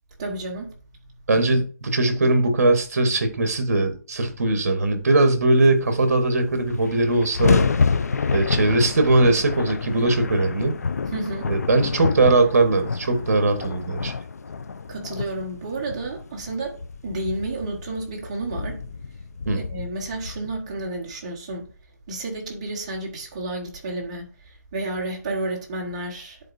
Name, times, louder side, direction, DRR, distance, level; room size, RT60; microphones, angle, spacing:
voice 1, 0.2-0.7 11.1-11.5 14.9-18.8 19.5-21.7 22.1-26.4, right 2 dB, 25° right, 1.2 m, -31 dB
voice 2, 1.3-7.6 8.3-10.8 11.5-14.1 19.5-19.6, right 2 dB, 55° right, 1.3 m, -20 dB
sound 1, 6.2-6.3 6.5-20.8, left 5 dB, 60° left, 0.5 m, -28 dB
10.5 x 4.1 x 2.6 m
hypercardioid pair, 170°, 9 cm